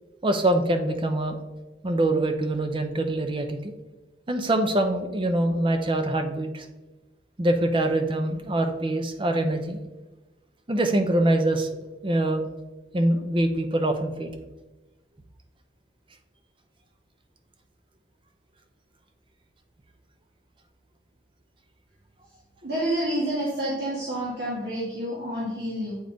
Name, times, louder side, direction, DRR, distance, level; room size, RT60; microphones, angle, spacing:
voice 1, 0.2-1.4 1.8-3.7 4.3-6.7 7.4-9.8 10.7-11.7 12.0-12.5 12.9-14.3, right 1 dB, 30° right, 6 dB, 0.5 m, -24 dB
voice 2, 22.6-26.0, right 1 dB, 60° right, -7 dB, 1.5 m, -28 dB
7.9 x 3.8 x 3.5 m, 1.1 s
head